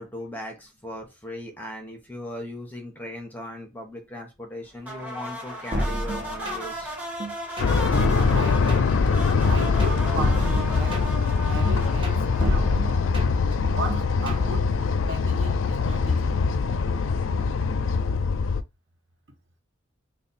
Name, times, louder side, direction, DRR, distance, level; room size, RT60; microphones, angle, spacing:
voice 1, 0.0-6.9, left 1 dB, 10° left, 1.0 m, -38 dB
sound 1, 4.8-13.3, equal, 10° right, 1.6 m, -36 dB
sound 2, 5.7-6.8 7.2-9.1 9.4-11.3 11.7-13.5 13.9-14.5, right 1 dB, 25° right, 1.1 m, -30 dB
sound 3, 7.6-18.6, left 4 dB, 75° left, 0.4 m, -23 dB
voice 2, 8.3-8.7 9.5-11.1 11.5-12.8 13.7-14.7 15.1-16.4, right 2 dB, 65° right, 1.3 m, -36 dB
3.3 x 2.3 x 4.1 m
head